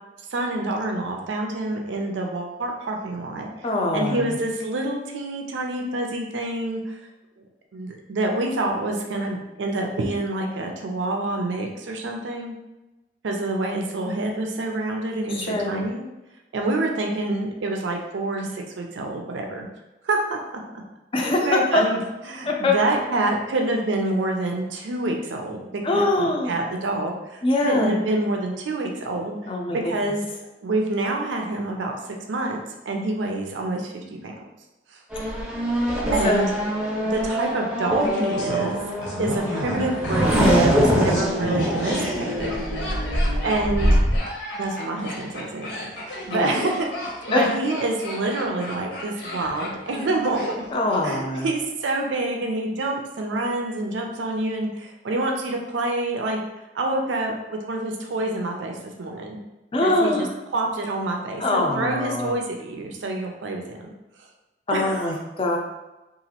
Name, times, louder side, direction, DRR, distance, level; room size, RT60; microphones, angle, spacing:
voice 1, 0.3-3.5 3.9-7.0 7.4-7.5 7.7-12.5 13.2-16.0 16.5-19.7 20.0-20.6 21.2-29.4 29.9-30.2 30.6-34.4 36.1-36.5 37.0-38.8 39.2-42.6 43.4-44.0 44.6-50.4 51.0-56.4 56.7-59.4 59.8-60.3 60.5-63.9 64.7-65.2, right 2 dB, 85° right, 2 dB, 0.4 m, -27 dB
voice 2, 3.6-4.4 15.3-15.9 21.1-21.8 22.5-22.7 25.8-26.5 27.4-27.9 29.5-29.8 36.2-36.5 46.3-46.5 47.3-47.5 50.7-51.5 59.7-60.3 61.4-62.3 64.7-65.6, left 2 dB, 30° left, 0 dB, 0.4 m, -23 dB
Race car auto racing / Accelerating revving vroom, 35.1-44.2, equal, 5° right, 0.7 m, -23 dB
Laughter, 38.0-51.0 51.3-51.4, left 1 dB, 75° left, 0.8 m, -34 dB
2.9 x 2.4 x 2.8 m, 1.0 s
head